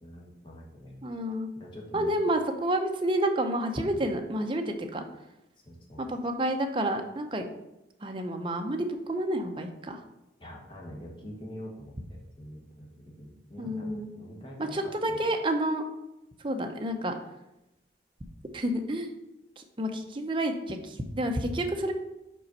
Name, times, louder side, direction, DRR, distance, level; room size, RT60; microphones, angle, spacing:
voice 1, 0.0-1.0 1.6-2.2 5.6-6.0 10.4-15.2, equal, 25° left, -2 dB, 1.4 m, -45 dB
voice 2, 1.0-1.5 1.9-5.0 6.0-7.4 8.0-10.0 13.6-14.1 14.7-15.8 16.4-17.1 18.5-19.1 19.6-21.9, right 1 dB, 25° right, 4 dB, 0.6 m, -29 dB
5.3 x 4.3 x 5.4 m, 0.92 s
head